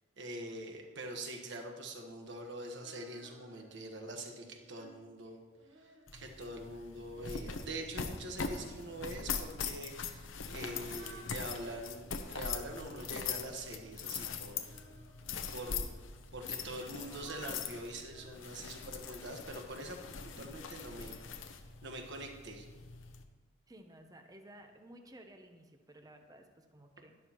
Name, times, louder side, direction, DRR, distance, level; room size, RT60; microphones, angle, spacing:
voice 1, 0.2-5.4 5.8-14.6 15.5-16.0 16.3-21.2 21.8-22.7, right 1 dB, 65° right, 3 dB, 1.3 m, -44 dB
Female singing, 2.8-3.8 4.4-9.2 10.0-15.5 16.3-19.4 20.1-21.2, right 1 dB, 90° right, 1.5 m, -60 dB
sound 1, 6.1-23.2, left 6 dB, 75° left, 0.8 m, -42 dB
voice 2, 23.7-27.2, right 1 dB, 20° right, 5 dB, 0.7 m, -55 dB
11.5 x 11.0 x 3.0 m, 1.3 s
head